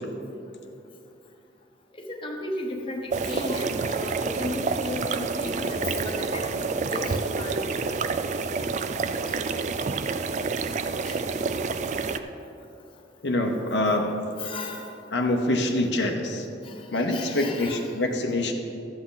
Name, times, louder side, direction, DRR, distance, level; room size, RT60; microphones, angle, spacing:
voice 1, 2.0-6.6 6.9-7.6 9.2-9.4 10.7-10.8 11.0-11.2 14.4-14.9 16.6-17.9, left 1 dB, 30° left, 0 dB, 1.1 m, -35 dB
sound 1, 3.1-12.2, right 4 dB, 40° right, 0.4 m, -28 dB
voice 2, 13.2-14.1 15.1-16.4 16.9-18.5, left 1 dB, 80° left, 3 dB, 0.9 m, -25 dB
13.0 x 8.1 x 3.9 m, 2.7 s
head